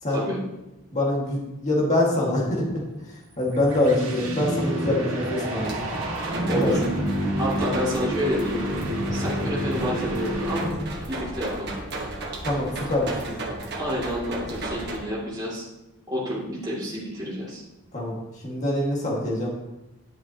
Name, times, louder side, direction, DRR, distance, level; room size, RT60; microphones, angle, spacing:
voice 1, 0.9-5.8 6.4-6.7 12.4-13.4 17.9-19.5, left 1 dB, 30° left, -4 dB, 1.8 m, -25 dB
sound 1, 3.3-11.1, right 1 dB, 70° right, 2.0 m, -28 dB
sound 2, 5.6-15.0, right 2 dB, 50° right, 1.3 m, -35 dB
voice 2, 6.5-6.8 7.3-8.7 9.1-10.7 11.1-11.8 13.8-15.7 16.1-17.6, equal, 20° right, -7 dB, 2.4 m, -29 dB
10.5 x 7.6 x 2.9 m, 0.98 s
head